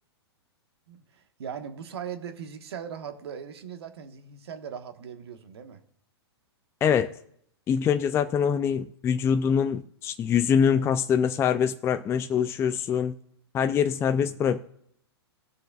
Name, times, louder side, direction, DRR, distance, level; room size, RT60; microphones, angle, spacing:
voice 1, 0.9-5.8, right 7 dB, 70° right, 7 dB, 1.3 m, -39 dB
voice 2, 6.8-7.1 7.7-13.1 13.5-14.6, left 7 dB, 20° left, 8 dB, 0.4 m, -24 dB
18.0 x 6.4 x 2.4 m, 0.68 s
hypercardioid pair, 115°, 14 cm